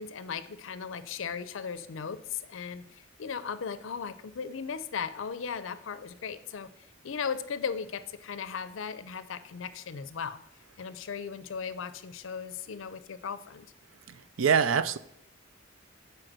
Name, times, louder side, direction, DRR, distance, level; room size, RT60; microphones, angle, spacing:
voice 1, 0.0-6.7 7.0-10.4 10.8-13.7, left 6 dB, 70° left, 0.5 m, -37 dB
voice 2, 14.1-15.0, right 6 dB, 80° right, 0.5 m, -25 dB
7.8 x 4.6 x 6.1 m
head